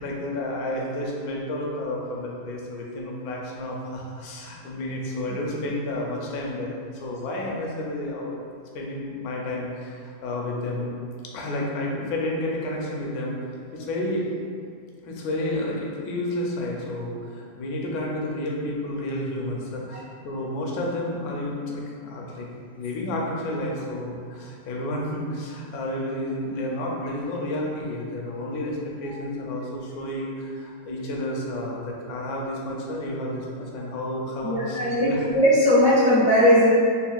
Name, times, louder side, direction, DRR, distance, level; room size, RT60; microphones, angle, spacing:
voice 1, 0.0-8.3 8.7-10.9 11.3-13.4 13.7-14.3 15.0-22.5 22.7-35.3, left 1 dB, 70° left, -2 dB, 1.0 m, -31 dB
voice 2, 34.4-36.7, equal, 40° right, -13 dB, 0.7 m, -18 dB
5.4 x 2.5 x 2.4 m, 2.2 s
omnidirectional pair, 1.8 m